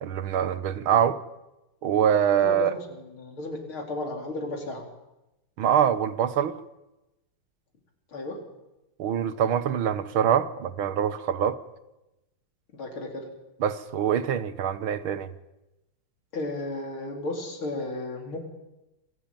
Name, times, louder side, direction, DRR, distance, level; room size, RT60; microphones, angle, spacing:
voice 1, 0.0-1.2 1.8-2.7 5.6-6.6 9.0-11.6 13.6-15.3, right 9 dB, 80° right, 14 dB, 2.1 m, -24 dB
voice 2, 2.4-4.9 8.1-8.4 12.7-13.3 16.3-18.4, left 2 dB, 80° left, 3 dB, 4.8 m, -34 dB
26.0 x 17.0 x 9.1 m, 0.97 s
omnidirectional pair, 2.3 m